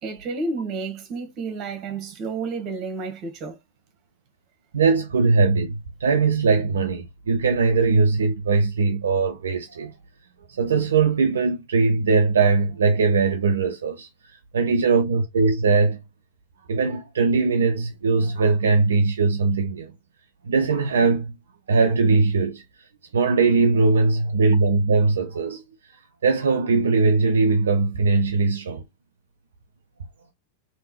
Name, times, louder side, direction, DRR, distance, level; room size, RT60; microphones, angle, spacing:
voice 1, 0.0-3.6, right 3 dB, 35° right, 1.3 m, -31 dB
voice 2, 4.7-9.9 10.5-14.1 14.5-16.0 16.7-19.9 20.4-21.3 21.7-22.6 23.1-25.6 26.2-28.8, right 4 dB, 65° right, 0.6 m, -20 dB
3.5 x 3.0 x 2.8 m
figure-of-eight pair, 90°, 0 cm